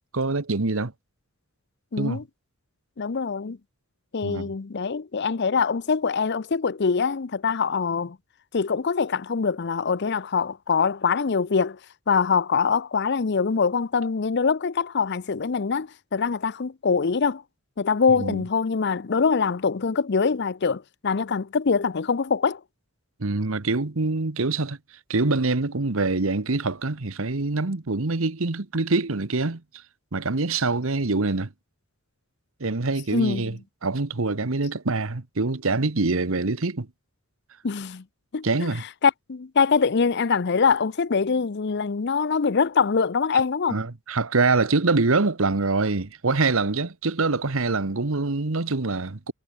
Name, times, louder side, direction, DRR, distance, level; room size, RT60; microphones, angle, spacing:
voice 1, 0.1-0.9 2.0-2.2 4.2-4.5 18.1-18.4 23.2-24.8 25.1-29.6 30.1-31.5 32.6-36.9 38.4-38.8 43.7-49.3, right 3 dB, 70° right, 1.2 m, -25 dB
voice 2, 1.9-2.2 3.0-3.6 4.1-8.2 8.5-11.8 12.1-17.4 17.8-22.6 33.1-33.6 37.6-38.0 38.3-38.7 39.0-43.8, left 5 dB, 55° left, 0.6 m, -24 dB
head